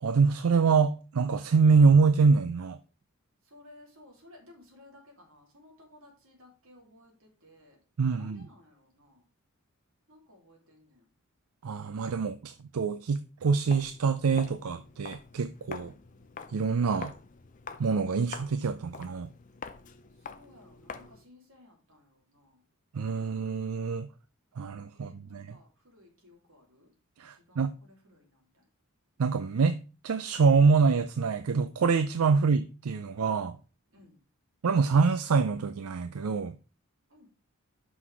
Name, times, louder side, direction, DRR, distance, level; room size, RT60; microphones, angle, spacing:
voice 1, 0.0-2.8 8.0-8.5 11.6-15.9 16.5-17.1 17.8-19.3 22.9-24.1 24.6-25.6 27.2-27.7 29.2-29.8 30.0-33.6 34.6-36.6, right 5 dB, 90° right, 0.5 m, -25 dB
voice 2, 3.4-7.8 8.1-9.2 10.1-11.1 15.8-16.5 20.1-22.6 24.9-26.9 27.3-28.7 32.3-32.4 33.9-34.2 37.1-37.3, left 1 dB, 70° right, 2.9 m, -57 dB
Walk footsteps, 13.6-21.3, left 5 dB, 35° left, 0.6 m, -46 dB
6.0 x 6.0 x 4.6 m
head